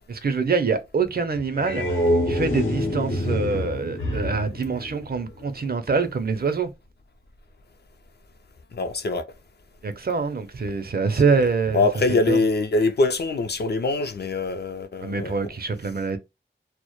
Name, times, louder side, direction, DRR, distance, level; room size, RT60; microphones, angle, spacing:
voice 1, 0.1-6.7 9.8-11.8 12.3-12.4 15.0-16.2, right 4 dB, 50° right, 0.4 m, -25 dB
sound 1, 1.4-5.6, left 1 dB, 85° left, 0.9 m, -26 dB
voice 2, 8.7-9.3 11.7-15.4, left 3 dB, 55° left, 0.4 m, -23 dB
2.1 x 2.0 x 2.9 m
wide cardioid pair, 55°, 20 cm